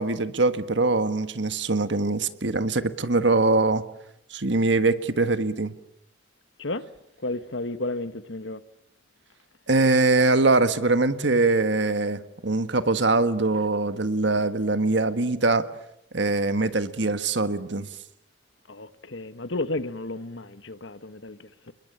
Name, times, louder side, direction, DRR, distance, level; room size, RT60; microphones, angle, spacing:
voice 1, 0.0-3.8 4.3-5.7 9.7-15.7 16.1-17.9, right 3 dB, 65° right, 1.5 m, -23 dB
voice 2, 6.6-6.9 7.2-8.6 18.7-21.7, left 2 dB, 70° left, 1.3 m, -33 dB
28.5 x 22.0 x 8.8 m
head